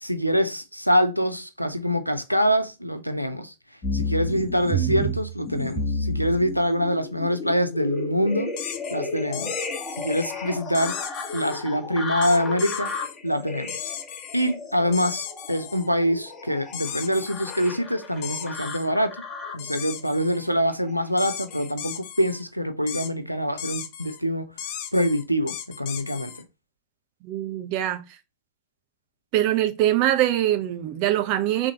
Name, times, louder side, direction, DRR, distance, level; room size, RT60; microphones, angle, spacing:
voice 1, 0.0-3.5 3.9-8.5 8.9-9.6 10.0-11.0 11.3-12.9 13.2-13.9 14.3-19.2 19.5-24.5 24.9-26.3, equal, 90° left, 0.6 m, -25 dB
sound 1, 3.8-19.7 20.4-21.0 21.5-21.6, left 1 dB, 25° left, 1.2 m, -32 dB
sound 2, 8.6-8.9 9.3-10.3 10.7-11.6 12.2-13.2 13.7-14.5 14.9-15.9 16.7-17.7 18.2-18.9 19.6-20.5 21.2-22.4 22.9-23.1 23.6-24.2 24.6-26.4, left 9 dB, 50° left, 0.7 m, -36 dB
voice 2, 27.2-28.0 29.3-31.7, right 13 dB, 45° right, 0.9 m, -23 dB
5.0 x 3.6 x 2.8 m
figure-of-eight pair, 90°, 0 cm